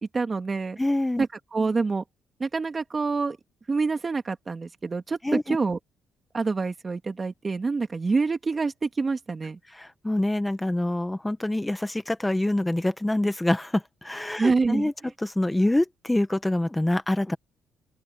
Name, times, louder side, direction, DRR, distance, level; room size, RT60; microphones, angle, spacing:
voice 1, 0.1-0.8 1.2-2.0 2.4-3.4 3.7-5.8 6.3-9.6 14.4-14.9, right 4 dB, 30° right, 2.4 m, -26 dB
voice 2, 0.8-1.2 5.2-5.6 9.7-14.9 15.2-17.4, left 1 dB, 10° left, 1.4 m, -26 dB
open air
cardioid pair, 90°, 0 cm